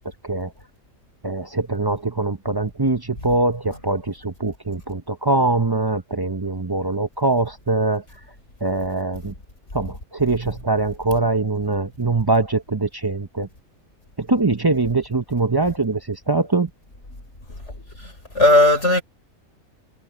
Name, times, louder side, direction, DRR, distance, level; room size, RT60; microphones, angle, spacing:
voice 1, 1.2-8.0 8.6-9.3 9.7-13.5 14.2-16.7, right 3 dB, 30° right, 0.5 m, -22 dB
voice 2, 17.7-19.0, left 1 dB, 55° left, 5.2 m, -17 dB
omnidirectional pair, 1.5 m